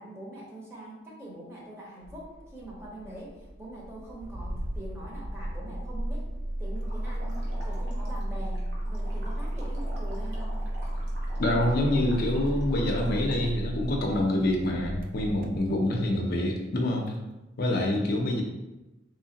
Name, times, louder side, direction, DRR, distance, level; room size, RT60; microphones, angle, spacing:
voice 1, 0.0-6.3 6.6-10.5, right 1 dB, 15° right, -4 dB, 0.9 m, -43 dB
Engine starting, 2.0-16.1, right 1 dB, 50° right, 0.4 m, -34 dB
sound 1, 6.8-13.5, equal, 65° right, 1.0 m, -47 dB
voice 2, 11.4-17.2 17.6-18.4, left 1 dB, 55° left, 1 dB, 0.5 m, -26 dB
3.5 x 3.1 x 2.8 m, 1.0 s
head